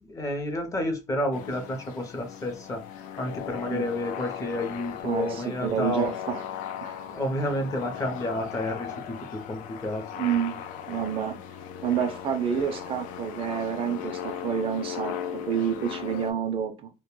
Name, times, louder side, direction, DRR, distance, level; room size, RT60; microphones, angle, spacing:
voice 1, 0.0-6.1 7.1-10.0, left 1 dB, 25° left, 0.6 m, -30 dB
sound 1, 1.3-16.3, left 9 dB, 80° left, 0.4 m, -38 dB
voice 2, 5.0-6.4 6.8-7.1 10.1-10.6 10.9-11.4 11.8-16.9, right 8 dB, 45° right, 0.4 m, -29 dB
2.2 x 2.1 x 2.9 m
cardioid pair, 140°, 14 cm